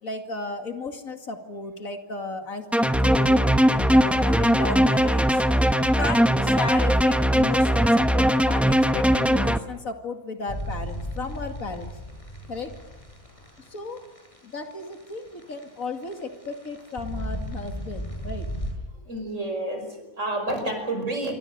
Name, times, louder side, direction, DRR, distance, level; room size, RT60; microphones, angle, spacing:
voice 1, 0.0-5.4 5.8-11.9 12.5-12.7 13.7-14.1 14.4-18.5, left 3 dB, 65° left, 5 dB, 2.8 m, -34 dB
sound 1, 2.7-9.6, equal, ahead, 0.9 m, -20 dB
sound 2, 10.5-18.7, equal, 20° left, 7.3 m, -35 dB
voice 2, 18.9-21.3, right 2 dB, 55° right, 6 dB, 5.7 m, -29 dB
27.5 x 25.0 x 6.7 m, 1.0 s
omnidirectional pair, 1.5 m